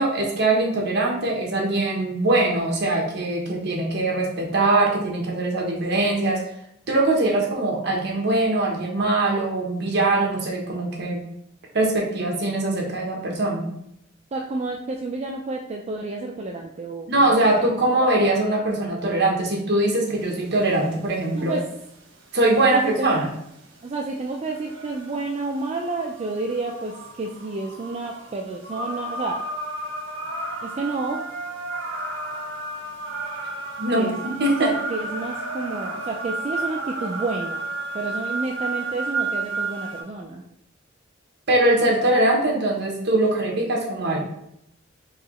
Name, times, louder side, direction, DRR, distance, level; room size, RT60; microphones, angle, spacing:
voice 1, 0.0-6.5 6.9-11.2 11.7-13.7 17.1-21.6 22.3-23.3 33.8-34.7 41.5-44.2, right 2 dB, 60° right, -1 dB, 1.1 m, -22 dB
voice 2, 14.3-17.3 21.3-21.6 22.6-23.2 23.8-29.4 30.6-31.2 33.9-34.3 34.6-37.6 37.9-40.4, right 3 dB, 35° right, 0 dB, 0.3 m, -30 dB
sound 1, 20.1-40.0, right 2 dB, 90° right, 1.0 m, -33 dB
4.7 x 2.8 x 3.1 m, 0.75 s
head